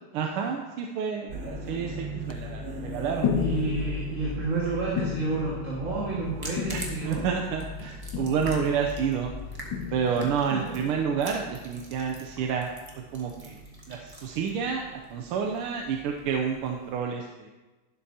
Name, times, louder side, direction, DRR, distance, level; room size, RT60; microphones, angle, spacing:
voice 1, 0.1-3.3 6.7-9.3 9.9-12.7 13.1-13.6 13.9-17.5, right 6 dB, 85° right, 3 dB, 1.6 m, -29 dB
sound 1, 1.3-1.8 2.3-2.5 3.2-10.6, left 7 dB, 70° left, 1.1 m, -34 dB
sound 2, 1.3-16.4, equal, 70° right, 0.4 m, -41 dB
voice 2, 3.4-7.3 10.1-10.8, right 3 dB, 35° right, -6 dB, 2.1 m, -31 dB
sound 3, 6.2-17.0, right 1 dB, 10° right, 1.3 m, -46 dB
11.5 x 11.5 x 2.8 m, 1.2 s
omnidirectional pair, 2.4 m